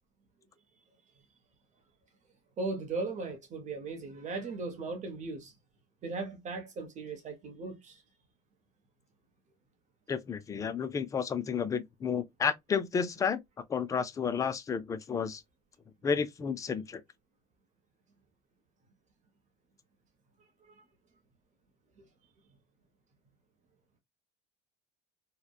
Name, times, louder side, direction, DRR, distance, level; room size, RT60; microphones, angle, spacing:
voice 1, 2.6-5.5 6.0-8.0, right 3 dB, 35° right, 0.7 m, -37 dB
voice 2, 10.1-13.4 13.7-15.4 16.0-17.0, left 6 dB, 15° left, 0.3 m, -31 dB
2.7 x 2.1 x 2.2 m
supercardioid pair, 110°, 21 cm